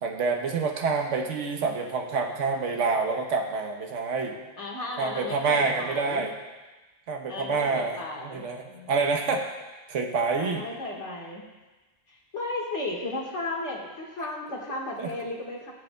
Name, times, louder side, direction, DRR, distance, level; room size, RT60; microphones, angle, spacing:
voice 1, 0.0-4.4 5.0-6.3 7.1-9.4 9.9-10.6 15.0-15.1, right 4 dB, 75° right, 2 dB, 1.3 m, -27 dB
voice 2, 4.6-6.3 7.3-8.9 10.4-11.4 12.1-15.7, left 2 dB, 70° left, -2 dB, 1.9 m, -35 dB
15.0 x 7.7 x 2.2 m, 1.2 s
omnidirectional pair, 1.3 m